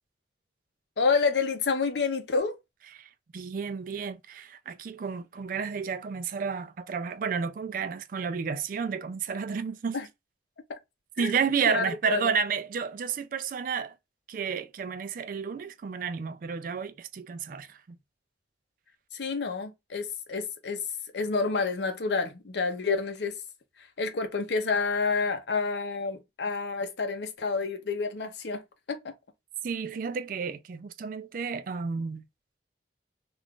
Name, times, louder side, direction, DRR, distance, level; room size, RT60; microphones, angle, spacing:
voice 1, 1.0-2.6 9.9-10.1 11.2-11.3 11.7-12.3 19.1-20.8 21.1-23.3 24.0-28.6 28.9-29.1, left 4 dB, 70° left, 0.6 m, -29 dB
voice 2, 3.0-10.0 11.2-13.9 14.3-17.8 29.6-32.2, right 6 dB, 50° right, 0.3 m, -31 dB
2.4 x 2.3 x 3.5 m
head